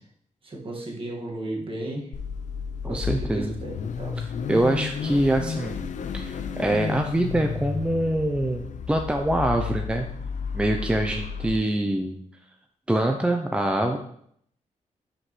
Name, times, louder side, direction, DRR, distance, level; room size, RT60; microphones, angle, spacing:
voice 1, 0.4-2.1 2.8-4.3, right 1 dB, 40° right, -1 dB, 1.9 m, -34 dB
Car / Idling / Accelerating revving vroom, 2.1-11.6, left 6 dB, 65° left, 0.6 m, -32 dB
voice 2, 2.8-3.6 4.2-5.8 6.1-10.1 10.5-12.2 12.9-14.0, right 1 dB, 10° right, 4 dB, 0.6 m, -24 dB
11.0 x 5.1 x 3.2 m, 0.67 s
cardioid pair, 100°, 13 cm